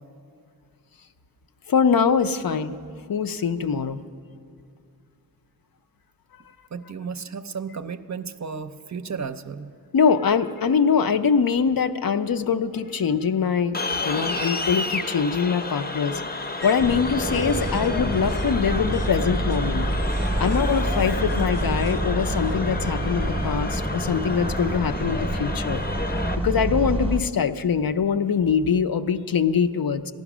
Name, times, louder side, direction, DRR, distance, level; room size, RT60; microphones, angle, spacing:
voice 1, 1.7-2.7 3.1-4.0 9.9-13.8 14.0-16.2 16.6-19.9 20.4-25.8 26.4-30.1, left 6 dB, 65° left, 8 dB, 0.6 m, -23 dB
voice 2, 6.7-9.7, right 5 dB, 50° right, 10 dB, 0.6 m, -33 dB
sound 1, 13.7-26.4, left 2 dB, 25° left, 0.7 m, -31 dB
sound 2, 16.6-24.4, left 1 dB, 80° left, 1.1 m, -39 dB
sound 3, 16.8-27.2, right 1 dB, 15° right, 0.8 m, -27 dB
14.5 x 10.5 x 6.0 m, 2.3 s
wide cardioid pair, 60°, 38 cm